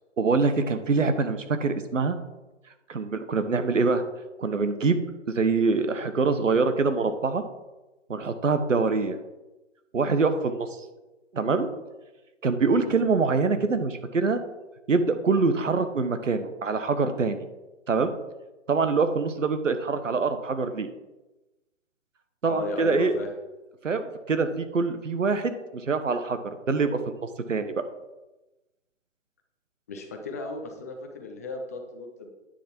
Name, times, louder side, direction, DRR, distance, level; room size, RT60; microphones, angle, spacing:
voice 1, 0.2-2.2 2.9-4.0 4.4-5.0 5.3-7.4 8.1-9.2 9.9-10.7 11.3-11.7 12.4-14.4 14.9-17.4 17.9-18.1 18.7-20.9 22.4-23.1 23.8-25.6 25.8-27.8, right 4 dB, 80° right, 9 dB, 1.1 m, -24 dB
voice 2, 22.4-23.3 29.9-32.3, left 3 dB, 15° left, 3 dB, 0.5 m, -35 dB
9.6 x 6.6 x 4.4 m, 1.1 s
figure-of-eight pair, 145°, 37 cm